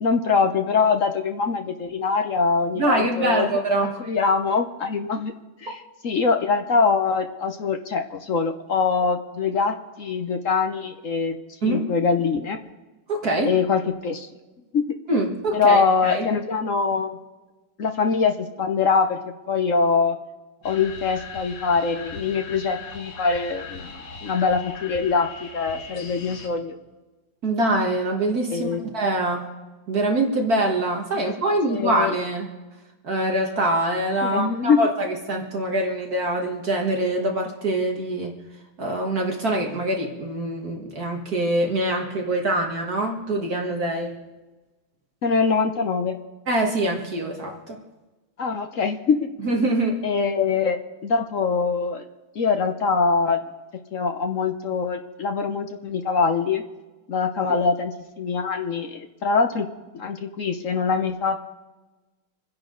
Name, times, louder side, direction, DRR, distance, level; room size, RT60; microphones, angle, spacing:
voice 1, 0.0-3.5 4.0-5.3 5.6-11.4 11.6-12.6 13.4-14.3 14.7-14.8 15.5-17.2 17.8-19.2 19.5-20.2 20.6-26.8 28.5-28.8 31.4-32.1 34.2-34.8 45.2-46.2 48.4-49.3 50.0-52.0 52.3-53.4 53.9-56.6 57.1-59.7 59.9-61.4, left 5 dB, 55° left, 5 dB, 1.0 m, -23 dB
voice 2, 2.8-4.0 11.6-11.9 13.1-13.6 15.1-16.3 27.4-29.5 29.9-32.5 33.0-38.4 38.8-44.2 46.5-47.8 49.4-50.0, right 1 dB, 45° right, 1 dB, 1.9 m, -24 dB
sound 1, 20.6-26.5, left 4 dB, 80° left, 2.5 m, -40 dB
27.0 x 10.5 x 3.9 m, 1.2 s
omnidirectional pair, 2.4 m